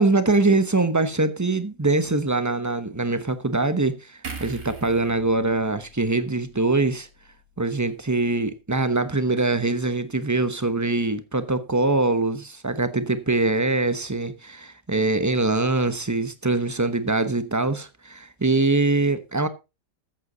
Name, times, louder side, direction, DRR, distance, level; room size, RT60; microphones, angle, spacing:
voice 1, 0.0-7.1 7.6-19.5, right 3 dB, 15° right, 0.6 m, -23 dB
sound 1, 4.2-7.6 8.0-8.1, right 4 dB, 65° right, 3.0 m, -42 dB
14.5 x 8.3 x 4.0 m
omnidirectional pair, 1.8 m